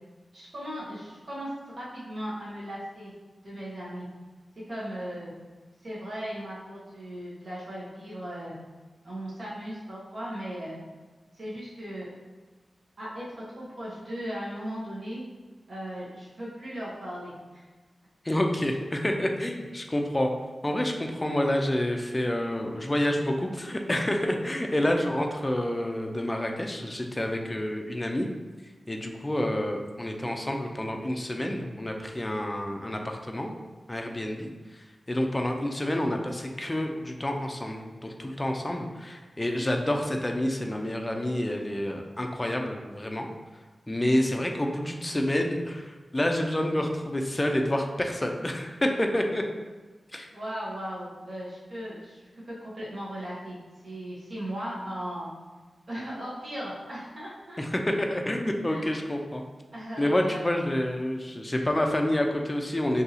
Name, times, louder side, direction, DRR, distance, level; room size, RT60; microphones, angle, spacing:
voice 1, 0.3-3.1 3.4-4.0 4.7-5.3 5.8-8.5 9.0-10.8 11.3-12.1 13.0-15.2 15.7-17.6 50.3-55.3 55.9-57.6 57.9-58.0 58.6-59.0 59.7-60.6, equal, 60° right, -8 dB, 1.0 m, -37 dB
voice 2, 18.2-20.3 20.6-28.3 28.9-33.5 33.9-43.3 43.9-49.4 50.1-50.3 57.6-59.4 60.0-63.0, left 1 dB, 20° left, 2 dB, 0.4 m, -28 dB
2.7 x 2.6 x 4.0 m, 1.3 s
wide cardioid pair, 95°, 0 cm